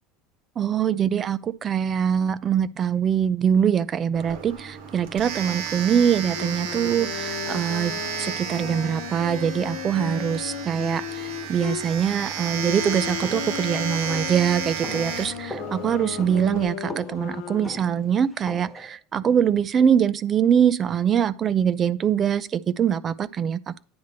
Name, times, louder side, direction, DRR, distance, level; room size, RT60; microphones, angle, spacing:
voice 1, 0.6-23.8, right 8 dB, 30° right, 0.4 m, -23 dB
Domestic sounds home sounds, 4.1-16.6, right 7 dB, 70° right, 1.4 m, -33 dB
sound 1, 6.2-11.9 12.5-17.9, left 12 dB, 80° left, 0.9 m, -36 dB
sound 2, 13.2-19.0, equal, ahead, 1.1 m, -40 dB
9.6 x 3.4 x 6.7 m
supercardioid pair, 140°, 0 cm